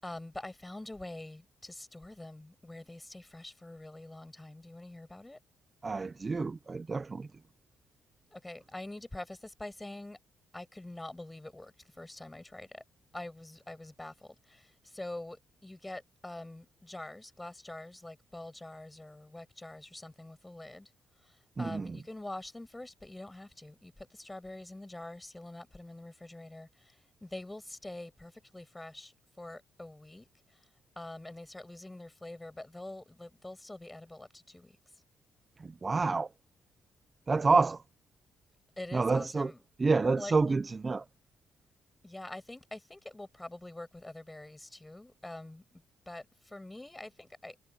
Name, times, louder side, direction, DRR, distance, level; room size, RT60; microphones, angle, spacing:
voice 1, 0.0-5.4 8.3-10.2 10.5-12.8 13.1-20.9 21.2-30.7 31.0-34.8 38.8-39.6 40.2-40.7 42.0-47.6, left 1 dB, 10° left, 7.1 m, -45 dB
voice 2, 5.8-7.3 21.6-22.0 35.6-36.3 37.3-37.8 38.9-39.5 39.8-41.1, right 4 dB, 30° right, 0.8 m, -28 dB
cardioid pair, 90°, 0 cm